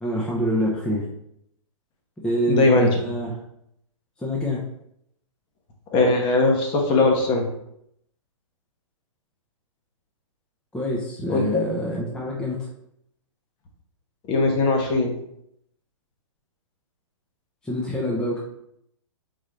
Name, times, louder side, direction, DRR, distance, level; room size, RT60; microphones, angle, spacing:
voice 1, 0.0-1.1 2.2-3.4 4.2-4.6 10.7-12.7 17.6-18.4, equal, 5° left, -4 dB, 0.6 m, -26 dB
voice 2, 2.5-2.9 5.9-7.5 11.3-11.4 14.3-15.1, left 2 dB, 30° left, 2 dB, 0.9 m, -19 dB
3.9 x 3.9 x 3.2 m, 0.75 s
hypercardioid pair, 130°, 17 cm